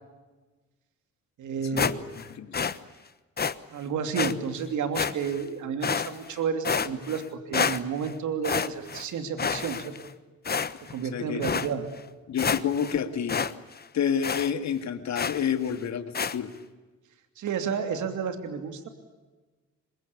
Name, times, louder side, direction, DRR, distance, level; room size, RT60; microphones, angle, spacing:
voice 1, 1.4-2.1 3.7-10.0 10.9-11.9 17.4-18.9, right 6 dB, 75° right, 7 dB, 3.0 m, -31 dB
sound 1, 1.8-2.3 2.5-2.8 3.4-3.5 4.1-4.3 4.9-5.4 5.8-6.3 6.6-7.2 7.5-8.1 8.4-9.0 9.4-10.1 10.4-11.0 11.4-11.7 12.1-12.2 12.4-12.9 13.3-13.5 13.8-13.9 14.2-14.5 15.1-15.5 16.1-16.4, left 6 dB, 30° left, 1.2 m, -28 dB
voice 2, 2.3-2.8 11.1-11.6 12.3-13.5 13.9-16.5, left 8 dB, 65° left, 8 dB, 2.3 m, -29 dB
25.5 x 22.5 x 8.5 m, 1.2 s
cardioid pair, 90°, 30 cm